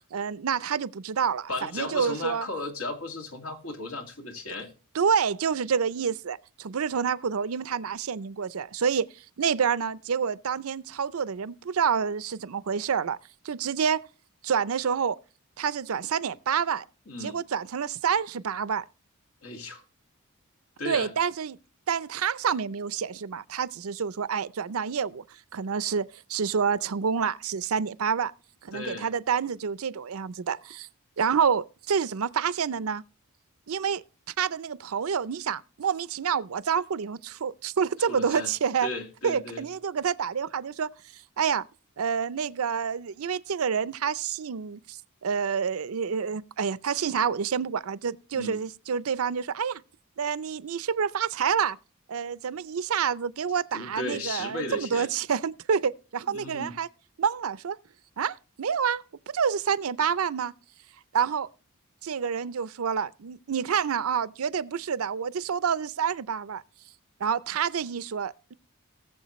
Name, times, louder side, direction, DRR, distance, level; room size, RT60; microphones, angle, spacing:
voice 1, 0.1-2.5 4.9-9.1 9.4-13.2 13.4-14.0 14.4-15.2 15.6-16.9 17.2-18.8 20.8-21.6 21.9-25.2 25.5-28.3 28.6-30.9 31.2-33.0 33.7-34.0 34.4-38.9 39.2-40.9 41.4-41.7 42.0-49.8 50.2-51.8 52.1-56.9 57.2-57.8 58.2-60.5 61.1-61.5 62.0-66.6 67.2-68.5, right 7 dB, 80° right, 0.5 m, -28 dB
voice 2, 1.5-4.7 17.1-17.4 19.4-19.8 20.8-21.1 28.7-29.1 38.1-38.5 38.8-39.7 48.3-48.7 53.7-55.1 56.3-56.7, left 2 dB, 90° left, 2.3 m, -35 dB
19.0 x 7.2 x 3.1 m
head